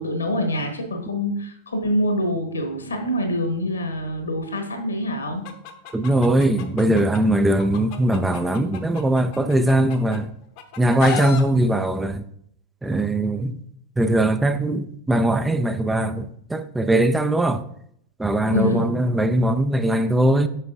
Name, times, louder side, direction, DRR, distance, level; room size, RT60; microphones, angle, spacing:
voice 1, 0.0-5.4 18.5-18.9, equal, 75° left, 1.3 m, -25 dB
Chicken rooster, 5.4-7.2 7.6-10.2 10.6-11.4, left 9 dB, 45° left, 0.8 m, -33 dB
voice 2, 5.9-10.3 10.8-12.3 12.8-13.6 14.0-17.6 18.2-20.5, right 1 dB, 10° right, 0.4 m, -20 dB
7.2 x 6.0 x 2.6 m
figure-of-eight pair, 90°, 0 cm